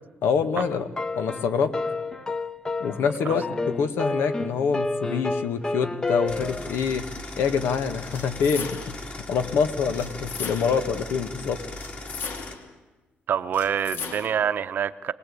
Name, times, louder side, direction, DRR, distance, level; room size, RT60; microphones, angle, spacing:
voice 1, 0.2-0.9 1.2-1.7 2.8-7.1 7.4-11.6, left 6 dB, 90° left, 1.6 m, -26 dB
sound 1, 0.6-6.8, left 3 dB, 20° left, 0.7 m, -30 dB
sound 2, 6.3-12.6, left 2 dB, 35° left, 2.5 m, -38 dB
sound 3, 8.1-9.1 9.9-10.9 11.8-12.7 13.5-14.5, left 5 dB, 65° left, 2.1 m, -37 dB
voice 2, 13.3-15.1, right 8 dB, 55° right, 0.8 m, -26 dB
24.0 x 19.0 x 8.6 m
cardioid pair, 135°, 4 cm